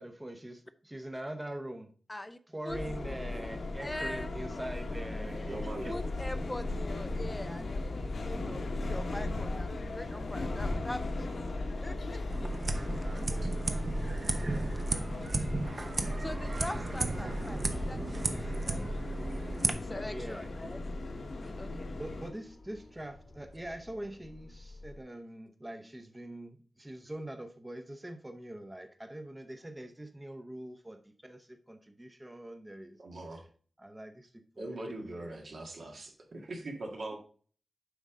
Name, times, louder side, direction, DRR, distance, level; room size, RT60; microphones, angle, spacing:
voice 1, 0.0-1.9 2.5-6.0 9.9-10.1 12.7-13.9 14.4-15.0 20.0-20.5 21.9-33.0 33.8-35.4, right 1 dB, 15° right, 0.8 m, -44 dB
sound 1, 2.7-22.3, left 2 dB, 75° left, 1.3 m, -37 dB
voice 2, 3.8-4.4 5.6-11.3 11.8-12.2 12.7-13.1 14.5-15.0 16.2-18.9 19.5-20.8 21.4-21.9, left 1 dB, 15° left, 0.4 m, -43 dB
voice 3, 5.5-6.1 33.0-33.5 34.6-37.2, right 2 dB, 70° right, 1.9 m, -41 dB
sound 2, 5.6-25.0, left 3 dB, 55° left, 1.1 m, -53 dB
sound 3, 12.3-19.7, right 2 dB, 45° right, 0.8 m, -34 dB
8.0 x 5.4 x 3.7 m
wide cardioid pair, 95°, 0 cm